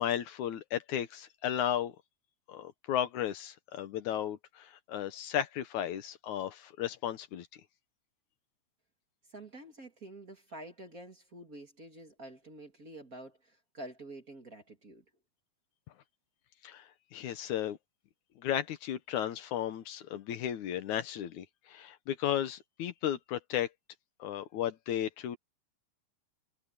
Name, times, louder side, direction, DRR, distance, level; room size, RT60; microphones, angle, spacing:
voice 1, 0.0-1.9 2.5-7.5 16.6-17.8 18.4-23.7 24.2-25.4, left 10 dB, 75° left, 2.4 m, -34 dB
voice 2, 9.3-15.0, right 1 dB, 30° right, 2.5 m, -48 dB
omnidirectional pair, 3.6 m